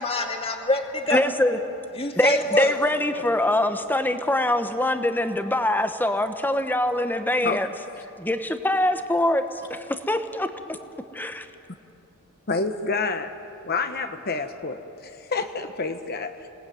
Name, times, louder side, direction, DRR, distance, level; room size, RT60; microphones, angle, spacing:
voice 1, 0.0-1.2 1.9-2.8, left 1 dB, 25° left, 3 dB, 2.2 m, -25 dB
voice 2, 1.1-1.6 2.2-7.7 8.2-9.4 9.7-10.5 11.1-11.5, left 1 dB, 10° left, 8 dB, 1.1 m, -23 dB
voice 3, 12.5-13.3 13.6-16.5, left 4 dB, 45° left, 8 dB, 1.1 m, -28 dB
28.0 x 19.0 x 9.5 m, 2.8 s
head